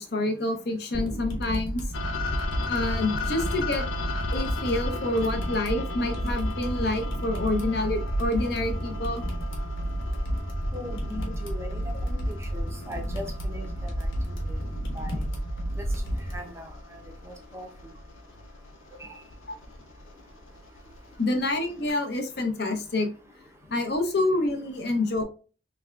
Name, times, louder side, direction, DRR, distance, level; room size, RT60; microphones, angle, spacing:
voice 1, 0.0-1.8 2.7-3.8 4.3-9.2 19.5-19.6 21.2-23.1 23.7-25.2, left 2 dB, 55° left, 4 dB, 0.7 m, -27 dB
sound 1, 0.9-16.4, right 1 dB, 75° left, 1.2 m, -31 dB
sound 2, 1.9-21.9, left 3 dB, 90° left, 0.6 m, -39 dB
voice 2, 10.7-13.7 14.0-14.1 14.9-15.2 15.8-15.9 16.3-16.7 17.2-17.7 18.9-19.1, left 1 dB, 15° right, 2 dB, 0.5 m, -39 dB
3.4 x 3.3 x 2.4 m, 0.35 s
head